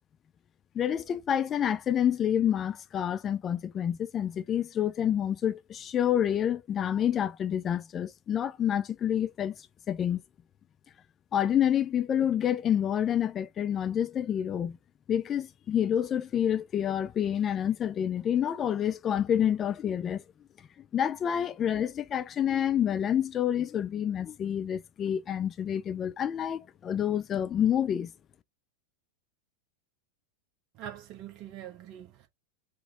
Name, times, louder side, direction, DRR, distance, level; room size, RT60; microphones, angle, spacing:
voice 1, 0.7-9.5 9.9-10.2 11.3-14.8 15.1-20.2 20.9-28.1, left 9 dB, 25° left, 0.4 m, -28 dB
voice 2, 30.7-32.3, right 10 dB, 40° right, 0.9 m, -43 dB
4.0 x 2.2 x 3.7 m
figure-of-eight pair, 90°, 0 cm